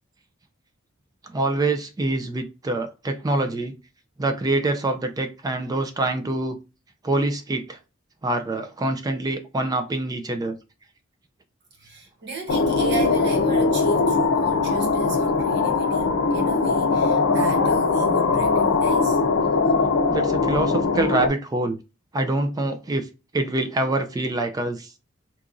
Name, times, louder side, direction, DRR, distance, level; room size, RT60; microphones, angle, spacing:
voice 1, 1.3-3.7 4.2-6.6 7.0-7.8 8.2-10.6 20.1-21.8 22.1-23.1 23.3-24.9, right 2 dB, 20° right, 0.3 m, -25 dB
voice 2, 11.8-19.2, right 4 dB, 55° right, 0.9 m, -34 dB
sound 1, 12.5-21.3, left 4 dB, 75° left, 0.5 m, -21 dB
2.9 x 2.5 x 3.6 m
head